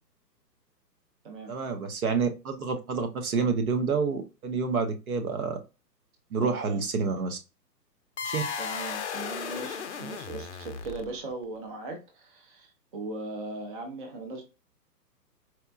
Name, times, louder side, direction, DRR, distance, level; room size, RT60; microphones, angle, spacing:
voice 1, 1.5-5.6 6.3-7.4 8.2-8.4, right 5 dB, 60° right, 0.9 m, -28 dB
voice 2, 6.4-6.8 8.6-14.4, right 2 dB, 30° right, 0.6 m, -39 dB
sound 1, 8.2-11.3, left 6 dB, 45° left, 0.5 m, -35 dB
4.4 x 2.1 x 2.4 m
figure-of-eight pair, 135°, 50 cm